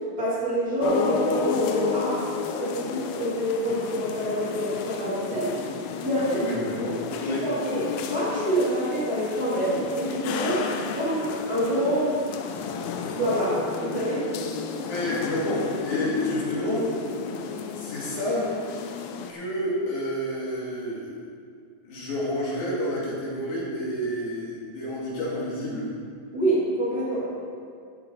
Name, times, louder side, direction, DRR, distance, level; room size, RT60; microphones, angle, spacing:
voice 1, 0.2-2.2 2.6-5.5 6.0-6.5 7.2-12.2 13.1-14.3 26.3-27.3, right 1 dB, 30° right, -10 dB, 2.6 m, -26 dB
sound 1, 0.8-19.3, left 5 dB, 90° left, 2.5 m, -32 dB
voice 2, 6.4-6.9 7.2-7.4 14.8-16.9 17.7-18.5 19.3-21.2 21.8-25.8, equal, 65° left, -6 dB, 3.1 m, -29 dB
13.5 x 7.2 x 4.1 m, 2.2 s
omnidirectional pair, 4.0 m